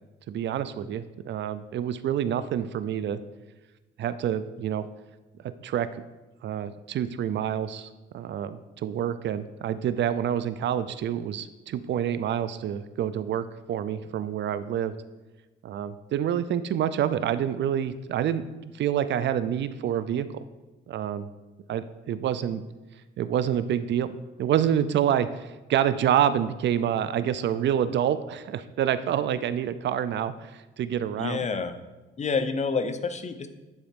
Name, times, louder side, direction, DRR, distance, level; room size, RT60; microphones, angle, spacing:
voice 1, 0.3-3.2 4.0-4.9 5.4-5.9 6.4-14.9 15.6-18.4 18.7-20.4 20.9-21.3 21.7-22.6 23.2-24.1 24.4-31.4, right 9 dB, 65° right, 13 dB, 0.5 m, -27 dB
voice 2, 31.2-31.8 32.2-33.5, left 4 dB, 35° left, 9 dB, 0.8 m, -28 dB
9.5 x 4.3 x 5.2 m, 1.2 s
cardioid pair, 90°, 20 cm